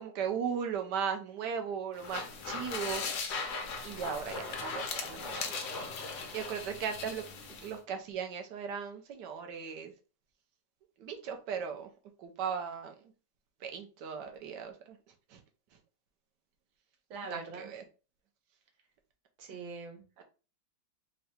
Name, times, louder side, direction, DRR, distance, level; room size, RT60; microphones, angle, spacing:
voice 1, 0.0-3.3 3.8-5.5 6.3-7.2 7.6-9.9 11.0-11.9 12.2-12.9 13.6-15.0 15.3-15.4 17.2-17.8 20.2-20.3, right 7 dB, 70° right, 1.3 m, -37 dB
sound 1, 1.9-7.7, left 4 dB, 60° left, 0.9 m, -38 dB
voice 2, 17.1-17.7 19.4-20.2, right 4 dB, 85° right, 1.8 m, -43 dB
3.8 x 2.2 x 4.1 m
omnidirectional pair, 2.0 m